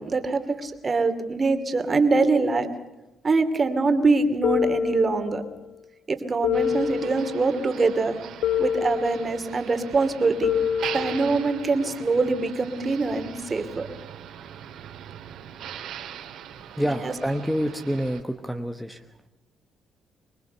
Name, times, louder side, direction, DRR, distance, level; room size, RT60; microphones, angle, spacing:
voice 1, 0.0-2.7 3.2-5.4 6.1-8.1 8.6-10.5 10.9-13.9 16.8-17.1, right 3 dB, 35° right, 7 dB, 2.6 m, -24 dB
sound 1, 4.4-5.6 6.4-7.6 8.4-9.6 10.4-11.6, left 9 dB, 85° left, 1.3 m, -27 dB
Motor vehicle (road), 6.5-18.2, right 9 dB, 80° right, 2.6 m, -40 dB
voice 2, 16.7-19.1, equal, ahead, 7 dB, 1.2 m, -28 dB
25.0 x 21.0 x 6.8 m, 1.0 s
cardioid pair, 90°, 0 cm